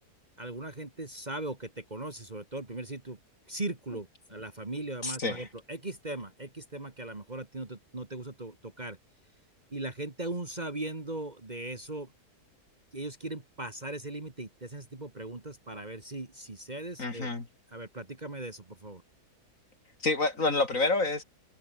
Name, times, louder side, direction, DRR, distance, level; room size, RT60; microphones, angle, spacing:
voice 1, 0.4-3.2 3.5-9.0 9.7-12.1 12.9-17.3 17.7-19.0, right 2 dB, 25° right, 2.1 m, -39 dB
voice 2, 5.0-5.5 17.0-17.5 20.0-21.2, left 3 dB, 55° left, 3.9 m, -28 dB
omnidirectional pair, 1.7 m